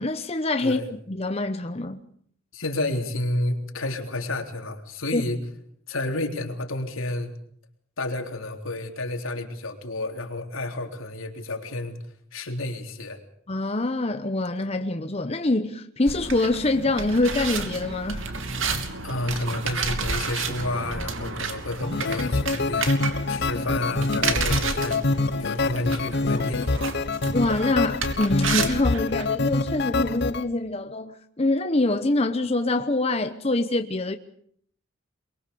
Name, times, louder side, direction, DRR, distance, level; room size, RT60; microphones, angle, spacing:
voice 1, 0.0-2.0 5.1-5.2 13.5-18.2 25.4-25.5 27.3-34.2, left 2 dB, 30° left, 0.9 m, -25 dB
voice 2, 2.5-5.4 5.9-7.4 8.0-12.0 12.3-13.2 19.0-22.9 23.3-25.0 25.4-27.0, left 2 dB, 75° left, 3.6 m, -30 dB
sound 1, 16.1-29.2, right 4 dB, 70° right, 2.9 m, -31 dB
sound 2, 21.8-30.4, left 3 dB, 55° left, 1.0 m, -26 dB
23.5 x 23.5 x 7.0 m
head